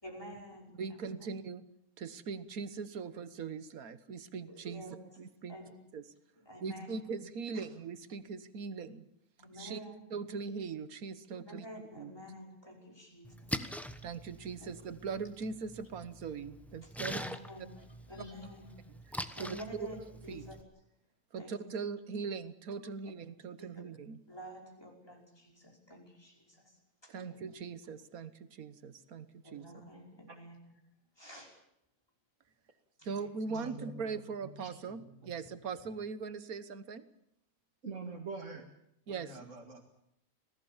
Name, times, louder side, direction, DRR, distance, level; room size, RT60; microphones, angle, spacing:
voice 1, 0.0-0.8 1.2-1.3 4.5-4.9 5.5-5.7 6.4-7.1 9.4-10.0 11.5-13.5 14.6-14.7 16.8-18.7 19.4-20.6 21.4-21.6 23.6-23.7 24.3-27.3 29.4-30.5 31.2-31.6 33.0-33.3 35.4-35.5, equal, 15° left, 0 dB, 5.4 m, -49 dB
voice 2, 0.8-1.6 2.0-5.6 5.9-6.0 6.6-9.0 9.6-9.8 10.1-11.7 12.0-12.1 14.0-17.2 19.4-19.9 20.3-20.5 21.3-24.2 27.1-29.6 33.0-37.0 39.1-39.4, right 5 dB, 85° right, 13 dB, 1.6 m, -40 dB
Splash splatter, 13.2-20.6, equal, ahead, 1.0 m, -44 dB
voice 3, 33.5-34.1 34.4-35.1 37.8-38.7 39.1-39.8, right 4 dB, 60° right, -1 dB, 2.4 m, -45 dB
26.0 x 18.0 x 7.3 m, 0.79 s
omnidirectional pair, 1.5 m